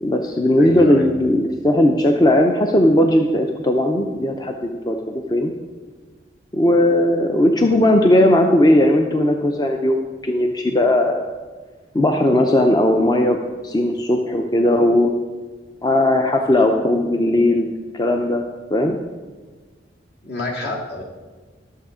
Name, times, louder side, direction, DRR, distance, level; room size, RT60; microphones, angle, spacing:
voice 1, 0.0-5.5 6.5-11.2 11.9-13.4 13.6-15.1 15.8-17.7 17.9-18.4 18.7-19.0, left 1 dB, 20° left, 4 dB, 0.5 m, -17 dB
voice 2, 0.6-1.2 20.2-21.0, left 1 dB, 60° left, -1 dB, 2.0 m, -27 dB
12.0 x 6.8 x 5.0 m, 1.3 s
head